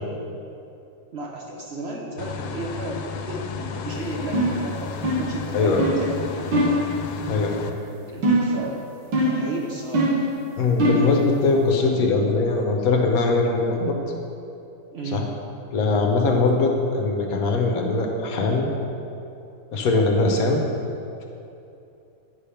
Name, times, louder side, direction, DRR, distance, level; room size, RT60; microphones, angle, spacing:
voice 1, 1.1-6.9 8.1-8.8 9.2-10.2 14.9-15.3, right 2 dB, 70° right, -1 dB, 0.6 m, -33 dB
sound 1, 2.2-7.7, left 6 dB, 85° left, 1.3 m, -33 dB
sound 2, 4.3-4.6 5.0-5.4 5.8-6.0 6.5-6.8 8.2-8.6 9.1-9.5 9.9-10.3 10.8-11.1, right 1 dB, 85° right, 1.7 m, -21 dB
voice 2, 5.5-5.9 7.3-7.7 10.6-14.0 15.1-15.2 15.7-18.7 19.7-20.6, left 3 dB, 60° left, 2 dB, 1.1 m, -21 dB
9.7 x 3.4 x 5.7 m, 2.7 s
omnidirectional pair, 1.9 m